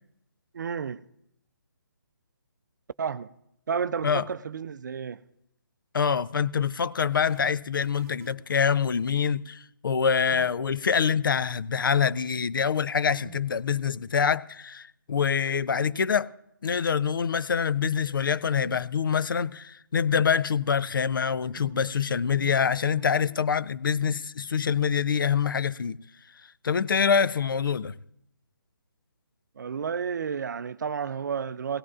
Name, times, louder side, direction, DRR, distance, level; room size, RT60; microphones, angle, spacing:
voice 1, 0.5-1.0 3.0-3.3 3.7-5.2 29.6-31.8, right 6 dB, 55° right, 0.4 m, -31 dB
voice 2, 5.9-16.3 16.6-26.0 26.6-27.9, left 6 dB, 70° left, 0.4 m, -25 dB
sound 1, 6.9-8.6 10.3-10.7 13.1-13.4 13.6-13.7 15.5-16.3 17.8-18.2 18.5-18.8 19.0-19.1 21.6-22.0 22.3-23.3, right 7 dB, 40° right, 0.9 m, -48 dB
16.5 x 16.5 x 2.4 m
figure-of-eight pair, 150°, 12 cm